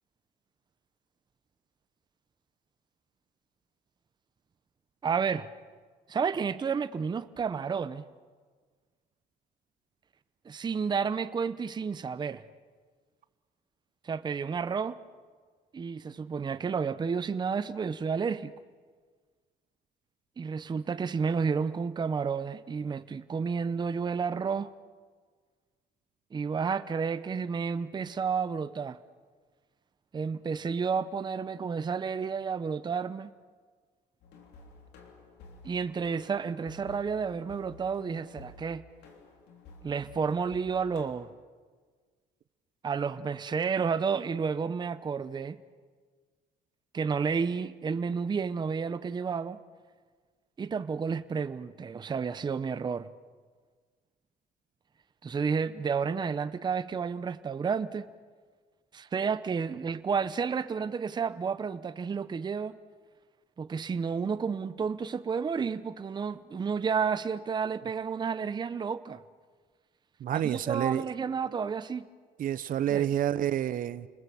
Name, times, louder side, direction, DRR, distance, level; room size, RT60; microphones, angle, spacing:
voice 1, 5.0-5.5 6.1-8.0 10.5-12.4 14.0-15.0 15.7-18.5 20.4-24.7 26.3-29.0 30.1-33.3 35.6-38.8 39.8-41.3 42.8-45.6 46.9-49.6 50.6-53.1 55.2-58.1 58.9-62.8 63.6-69.2 70.3-72.1 72.9-73.1, right 6 dB, 25° right, 0.7 m, -31 dB
sound 1, 34.2-41.1, left 4 dB, 80° left, 3.5 m, -52 dB
voice 2, 70.2-71.1 72.4-74.1, right 11 dB, 55° right, 0.8 m, -29 dB
29.5 x 20.5 x 7.1 m
cardioid pair, 110°, 17 cm